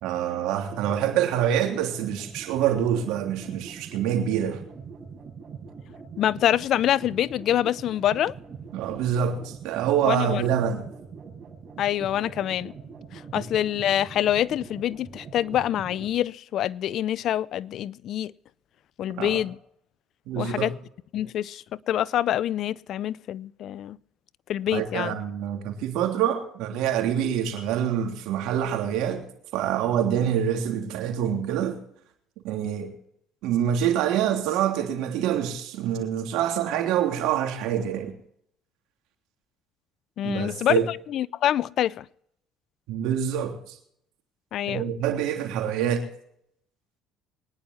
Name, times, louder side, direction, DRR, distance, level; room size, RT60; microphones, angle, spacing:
voice 1, 0.0-4.6 8.7-10.9 13.3-13.4 19.2-19.4 20.3-20.7 24.7-29.3 29.5-31.8 32.4-32.9 33.4-38.1 40.2-40.9 42.9-43.8 44.7-46.1, right 9 dB, 75° right, 3.2 m, -26 dB
sound 1, 0.8-16.1, right 5 dB, 45° right, 5.9 m, -43 dB
voice 2, 6.2-8.3 10.0-10.4 11.8-12.7 13.1-18.3 19.0-19.6 20.4-20.7 21.1-24.0 24.5-25.2 40.2-42.1 44.5-44.9, left 11 dB, 60° left, 0.5 m, -26 dB
23.0 x 10.5 x 4.2 m
supercardioid pair, 90°, 0 cm